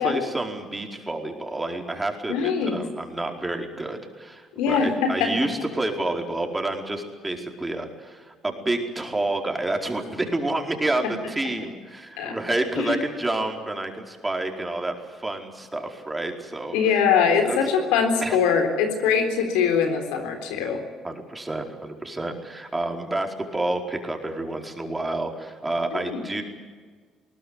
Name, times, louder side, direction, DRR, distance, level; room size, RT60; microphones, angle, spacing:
voice 1, 0.0-16.8 17.4-17.6 18.2-18.4 21.0-26.4, right 2 dB, 15° right, 3 dB, 4.6 m, -29 dB
voice 2, 2.3-2.8 4.6-5.3 11.0-11.1 12.2-12.4 12.8-13.0 16.7-20.8 25.9-26.2, left 6 dB, 80° left, 6 dB, 3.8 m, -22 dB
21.0 x 19.0 x 9.7 m, 1.5 s
hypercardioid pair, 65°, 0 cm